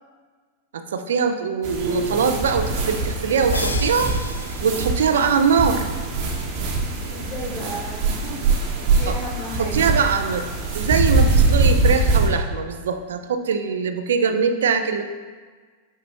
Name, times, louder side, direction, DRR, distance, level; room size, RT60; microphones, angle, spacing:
voice 1, 0.7-4.1 4.6-5.9 9.1-9.2 9.6-10.4 10.7-15.0, right 6 dB, 65° right, 8 dB, 0.4 m, -22 dB
sound 1, 1.6-12.3, right 3 dB, 45° right, 1.0 m, -22 dB
sound 2, 3.5-5.3, left 2 dB, 80° left, 0.3 m, -33 dB
voice 2, 7.1-8.4 9.0-9.8, equal, 30° left, -3 dB, 1.7 m, -34 dB
4.9 x 4.3 x 4.6 m, 1.5 s
figure-of-eight pair, 90°, 0 cm